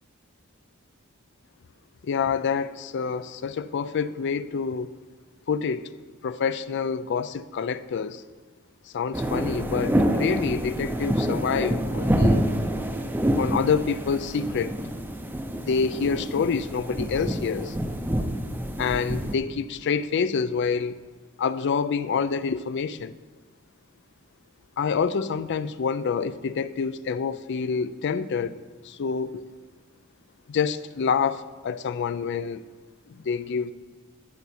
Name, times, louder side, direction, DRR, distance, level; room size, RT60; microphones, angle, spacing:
voice 1, 2.0-4.9 5.5-5.9 6.2-8.2 8.9-12.5 13.4-14.7 15.7-17.8 18.8-21.0 21.4-23.1 24.8-28.6 28.8-29.4 30.5-32.6 33.1-33.7, left 6 dB, 55° left, 0.4 m, -27 dB
sound 1, 9.1-19.3, equal, 10° right, 0.6 m, -27 dB
12.5 x 6.8 x 4.3 m
head